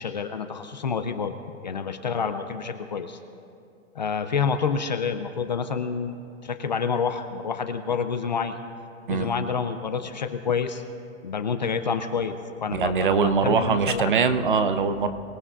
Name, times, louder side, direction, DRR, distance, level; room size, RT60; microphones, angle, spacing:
voice 1, 0.0-1.3 1.6-3.2 3.9-8.6 9.1-10.8 11.2-12.4 12.6-14.1, left 6 dB, 35° left, 8 dB, 0.5 m, -28 dB
voice 2, 12.7-15.1, right 5 dB, 40° right, 10 dB, 0.7 m, -22 dB
24.5 x 17.0 x 2.5 m, 2.5 s
hypercardioid pair, 175°, 40 cm